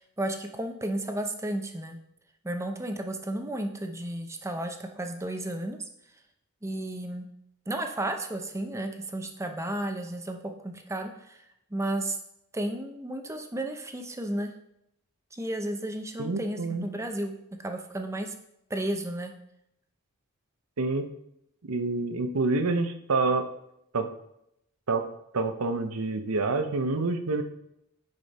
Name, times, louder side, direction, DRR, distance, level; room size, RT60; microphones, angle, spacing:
voice 1, 0.0-2.0 2.4-5.8 6.6-7.3 7.7-11.4 11.7-12.2 12.5-14.5 15.3-17.3 17.6-18.3 18.7-19.3, right 1 dB, 15° right, 5 dB, 0.7 m, -33 dB
voice 2, 16.2-16.9 20.8-21.1 21.6-23.5 23.9-24.1 24.9-25.1 25.3-27.4, right 3 dB, 85° right, 8 dB, 0.8 m, -27 dB
9.6 x 5.1 x 4.2 m, 0.80 s
head